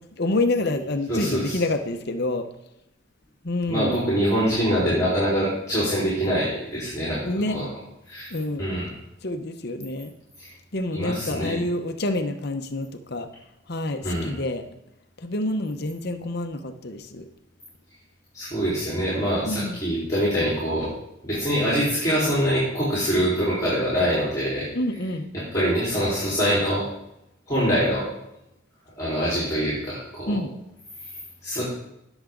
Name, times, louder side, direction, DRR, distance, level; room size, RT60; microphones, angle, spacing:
voice 1, 0.2-2.5 3.4-4.0 7.2-7.6 8.3-8.6 9.2-10.1 10.7-13.3 13.7-14.6 15.2-17.3 19.4-19.8 24.7-25.3 30.3-30.5, left 2 dB, 50° left, 7 dB, 0.9 m, -27 dB
voice 2, 1.1-1.6 3.7-7.2 7.5-7.6 8.1-8.3 8.6-8.9 10.9-11.5 14.0-14.3 18.3-20.9 21.2-24.7 25.5-26.9 27.5-28.0 29.0-30.4 31.4-31.6, equal, 15° left, -8 dB, 4.1 m, -24 dB
19.0 x 7.2 x 3.9 m, 0.86 s
head